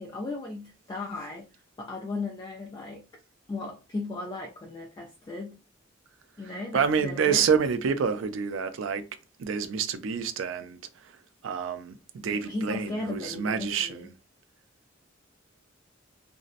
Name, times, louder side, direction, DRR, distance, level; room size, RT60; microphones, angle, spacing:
voice 1, 0.0-1.5 1.8-3.0 3.5-5.6 6.4-7.5 12.2-14.1, left 2 dB, 20° left, 0.3 m, -36 dB
voice 2, 6.4-9.1 9.4-11.2 11.4-14.1, right 6 dB, 90° right, 0.4 m, -28 dB
2.6 x 2.0 x 2.4 m
head